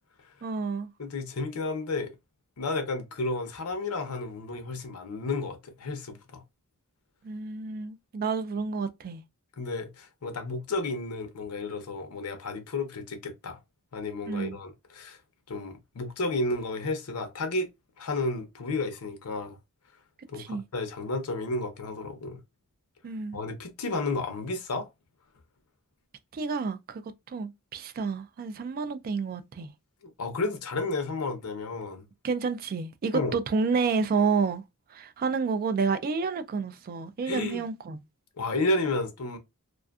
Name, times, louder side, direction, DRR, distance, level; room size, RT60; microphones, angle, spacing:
voice 1, 0.4-0.9 7.2-9.2 14.3-14.6 20.4-20.6 23.0-23.4 26.3-27.0 27.3-29.7 32.2-34.6 34.9-38.0, right 5 dB, 45° right, 0.3 m, -29 dB
voice 2, 1.0-2.1 2.6-6.4 9.6-13.6 13.9-15.2 15.5-17.7 18.0-19.6 20.3-22.4 23.3-24.9 30.0-32.1 33.1-33.3 37.2-37.6 38.4-39.4, left 2 dB, 80° left, 0.7 m, -32 dB
2.5 x 2.4 x 2.3 m
head